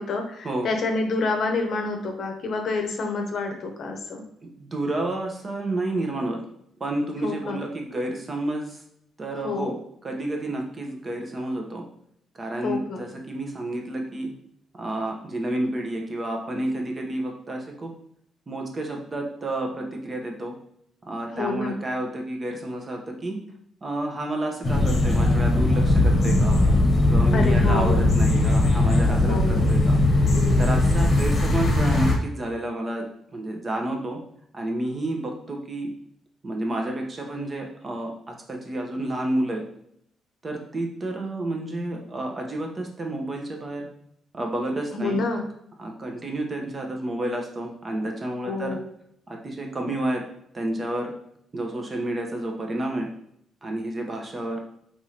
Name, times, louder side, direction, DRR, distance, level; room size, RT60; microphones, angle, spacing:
voice 1, 0.0-4.2 7.2-7.6 9.4-9.7 12.6-13.1 21.3-21.8 27.3-28.0 29.2-29.7 44.9-45.4 48.4-48.8, left 3 dB, 60° left, 3 dB, 0.7 m, -28 dB
voice 2, 4.6-6.4 6.8-8.8 9.2-11.8 12.3-14.3 14.7-17.9 18.5-20.5 21.1-23.4 23.8-26.6 27.1-30.3 30.6-33.0 33.3-34.2 34.5-35.9 36.4-39.6 40.4-43.8 44.3-45.2 45.8-48.8 49.3-50.2 50.5-51.1 51.5-53.1 53.6-54.6, right 1 dB, 30° right, 1 dB, 0.8 m, -30 dB
sound 1, 24.6-32.2, left 2 dB, 35° left, 0.9 m, -19 dB
3.6 x 3.0 x 2.8 m, 0.72 s
cardioid pair, 90°, 0 cm